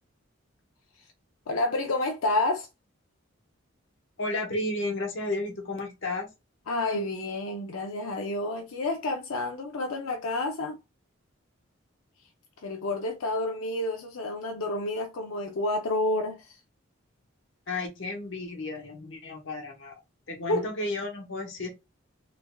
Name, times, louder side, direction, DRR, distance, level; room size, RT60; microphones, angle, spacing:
voice 1, 1.5-2.7 6.7-10.8 12.6-16.6 20.5-20.7, left 2 dB, 85° left, 0.5 m, -29 dB
voice 2, 4.2-6.3 17.7-20.0 20.3-21.7, left 2 dB, 65° left, 1.1 m, -33 dB
3.4 x 3.3 x 2.2 m
head